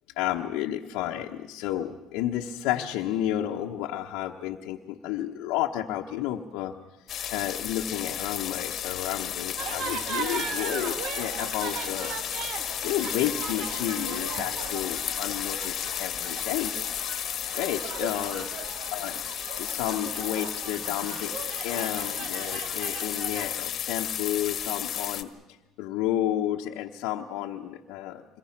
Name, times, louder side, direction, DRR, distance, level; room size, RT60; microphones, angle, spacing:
voice 1, 0.2-6.7 7.3-12.1 12.8-16.7 17.5-18.5 18.9-19.2 19.6-21.3 21.6-25.3 25.8-28.2, left 12 dB, 85° left, 0 dB, 1.2 m, -31 dB
sound 1, 7.1-25.2, left 10 dB, 55° left, 1.5 m, -33 dB
crowd int medium busy Haitian man on megaphone, 9.6-23.5, right 7 dB, 65° right, 1.7 m, -38 dB
26.5 x 22.0 x 6.0 m, 0.97 s
supercardioid pair, 90°, 0 cm